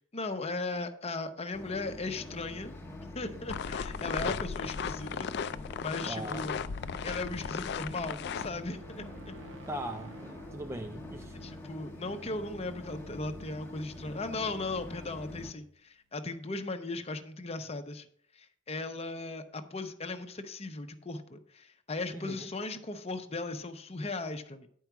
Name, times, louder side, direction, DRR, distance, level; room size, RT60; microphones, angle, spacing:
voice 1, 0.1-2.7 3.1-5.3 5.8-6.6 7.0-9.3 11.3-18.1 18.3-24.7, left 2 dB, 30° left, 0.7 m, -37 dB
sound 1, 1.5-15.5, left 1 dB, 15° left, 1.0 m, -45 dB
sound 2, 3.5-8.5, left 6 dB, 55° left, 0.4 m, -36 dB
voice 2, 6.1-6.5 9.7-11.4 22.1-22.5, right 1 dB, 15° right, 0.3 m, -40 dB
sound 3, 7.0-15.8, right 1 dB, 70° right, 1.1 m, -55 dB
10.5 x 4.6 x 5.9 m
head